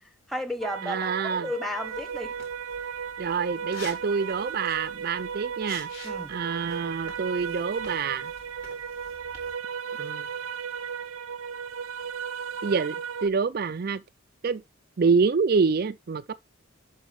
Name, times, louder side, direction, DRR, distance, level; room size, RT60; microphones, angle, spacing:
voice 1, 0.3-2.3 6.0-6.3, left 1 dB, ahead, 1.1 m, -33 dB
sound 1, 0.6-13.3, right 7 dB, 85° right, 0.7 m, -35 dB
voice 2, 0.8-1.5 3.2-8.3 10.0-10.3 12.6-14.0 14.4-14.6 15.0-16.3, right 5 dB, 45° right, 0.4 m, -27 dB
sound 2, 1.8-9.6, left 3 dB, 80° left, 4.0 m, -49 dB
11.0 x 4.1 x 3.5 m
head